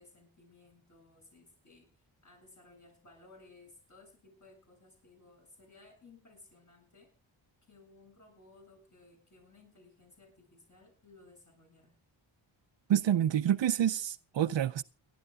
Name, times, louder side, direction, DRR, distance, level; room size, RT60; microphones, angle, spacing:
voice 1, 0.0-7.1 7.6-11.9, left 3 dB, 35° left, 7.9 m, -59 dB
voice 2, 12.9-14.8, right 10 dB, 65° right, 0.6 m, -28 dB
29.5 x 11.5 x 2.4 m
wide cardioid pair, 175°, 48 cm